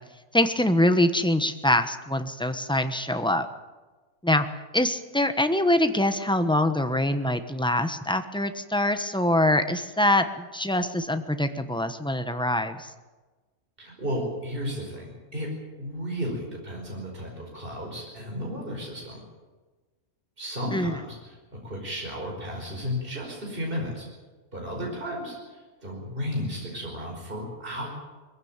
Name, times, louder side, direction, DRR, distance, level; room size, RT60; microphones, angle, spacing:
voice 1, 0.3-3.5 4.2-4.5 4.7-12.9 20.7-21.0, left 1 dB, 5° left, 8 dB, 1.0 m, -24 dB
voice 2, 13.8-19.2 20.4-21.4 21.6-24.1 24.5-27.9, equal, 35° right, 0 dB, 5.1 m, -33 dB
21.5 x 16.0 x 9.0 m, 1.3 s
omnidirectional pair, 1.5 m